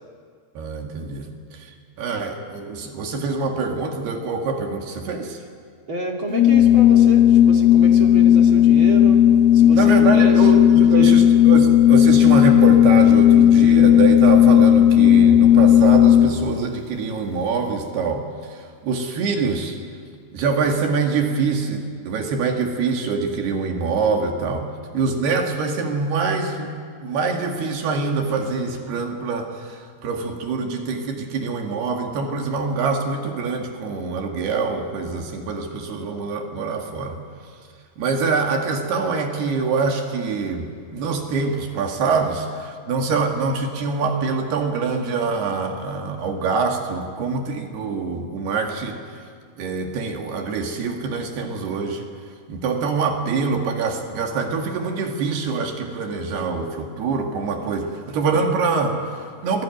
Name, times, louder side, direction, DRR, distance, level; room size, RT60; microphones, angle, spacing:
voice 1, 0.6-5.4 9.7-19.8 20.3-24.7 24.9-26.7 27.0-37.2 38.0-49.3 49.6-52.1 52.5-59.6, right 4 dB, 75° right, 3 dB, 4.0 m, -25 dB
voice 2, 5.9-9.2 9.5-10.5 10.9-11.2, right 3 dB, 35° right, 1 dB, 2.7 m, -29 dB
Organ, 6.3-16.6, left 10 dB, 75° left, 2.8 m, -13 dB
27.5 x 20.5 x 9.2 m, 2.1 s
omnidirectional pair, 4.8 m